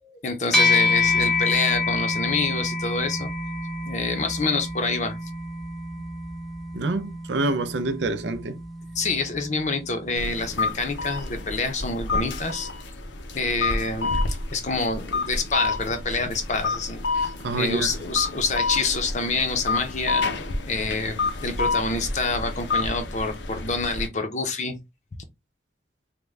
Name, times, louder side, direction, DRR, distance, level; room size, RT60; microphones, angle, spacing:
voice 1, 0.0-3.3 3.8-5.2 8.9-12.7 13.3-14.2 14.5-20.3 20.7-24.8, left 3 dB, 40° left, 0.6 m, -27 dB
sound 1, 0.5-10.1, left 3 dB, ahead, 0.7 m, -27 dB
voice 2, 6.7-8.6 17.2-17.9, right 2 dB, 75° right, 0.4 m, -27 dB
sound 2, 10.2-24.1, left 3 dB, 80° left, 0.7 m, -29 dB
3.6 x 2.2 x 3.2 m
head